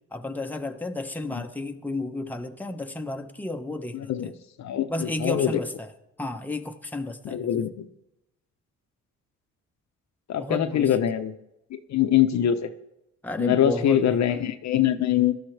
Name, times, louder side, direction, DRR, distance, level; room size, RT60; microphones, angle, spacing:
voice 1, 0.1-4.1 4.9-5.9 6.2-7.4 10.4-10.9 13.2-14.2, left 2 dB, 5° left, 5 dB, 1.1 m, -32 dB
voice 2, 3.9-4.3 4.6-5.6 7.2-7.9 10.3-11.4 11.7-12.7 13.4-15.4, left 10 dB, 65° left, 9 dB, 0.9 m, -23 dB
18.0 x 12.5 x 3.4 m, 0.88 s
cardioid pair, 90°, 30 cm